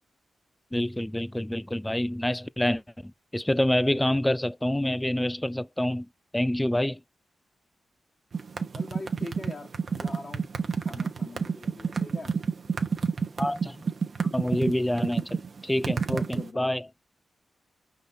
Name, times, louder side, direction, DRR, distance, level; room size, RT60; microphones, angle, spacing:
voice 1, 0.7-6.1 6.3-7.0 13.4-13.8 14.3-16.8, left 1 dB, 10° left, 0.3 m, -27 dB
sound 1, 8.3-16.5, right 5 dB, 55° right, 0.9 m, -29 dB
voice 2, 8.7-10.5 10.8-12.3 16.1-16.7, left 2 dB, 35° left, 1.6 m, -42 dB
5.3 x 3.8 x 2.7 m
cardioid pair, 80°, 0 cm